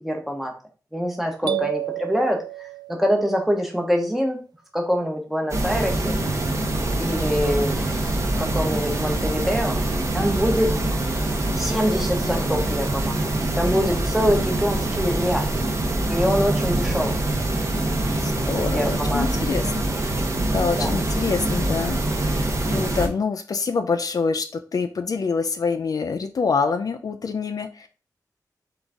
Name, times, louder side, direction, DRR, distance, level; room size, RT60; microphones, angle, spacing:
voice 1, 0.0-0.5 0.9-2.4 2.9-4.4 4.7-6.2 7.0-9.8 10.1-10.7 11.6-13.2 13.6-15.5 16.1-17.2 18.7-19.2 20.7-20.9, equal, 5° right, 2 dB, 1.0 m, -24 dB
sound 1, 1.5-3.4, right 13 dB, 80° right, 0.4 m, -30 dB
sound 2, 5.5-23.1, right 1 dB, 45° right, 0.8 m, -24 dB
voice 2, 14.3-15.0 18.2-19.8 20.5-27.9, left 5 dB, 60° left, 8 dB, 0.4 m, -26 dB
3.9 x 3.7 x 3.4 m, 0.37 s
wide cardioid pair, 135°, 7 cm